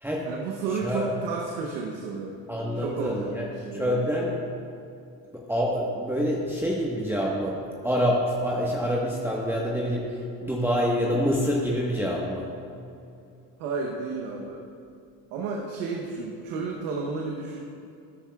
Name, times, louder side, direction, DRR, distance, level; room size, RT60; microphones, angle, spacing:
voice 1, 0.2-2.4 2.7-4.4 13.6-14.6 15.3-17.6, right 4 dB, 85° right, 0 dB, 1.0 m, -32 dB
voice 2, 2.5-3.5 3.7-4.3 5.3-7.6 7.8-12.5, equal, 5° right, -4 dB, 1.3 m, -26 dB
13.0 x 9.8 x 2.4 m, 2.6 s
supercardioid pair, 75°, 44 cm